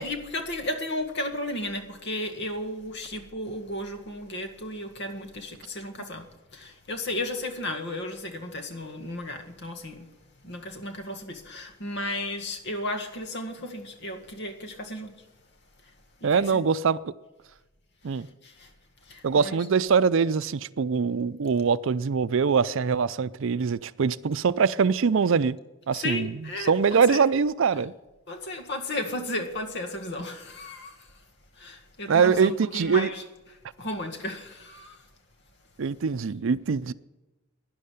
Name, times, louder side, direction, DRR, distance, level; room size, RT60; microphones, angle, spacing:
voice 1, 0.0-6.3 6.5-10.1 10.4-15.2 16.2-16.6 18.4-18.7 19.1-19.6 25.9-27.2 28.3-31.1 31.6-33.2 33.8-35.0, left 1 dB, 60° left, 1.8 m, -34 dB
voice 2, 16.2-17.1 18.0-18.3 19.2-25.6 25.9-27.9 32.1-33.1 35.8-36.9, right 5 dB, 65° right, 0.5 m, -23 dB
12.0 x 10.5 x 9.9 m
head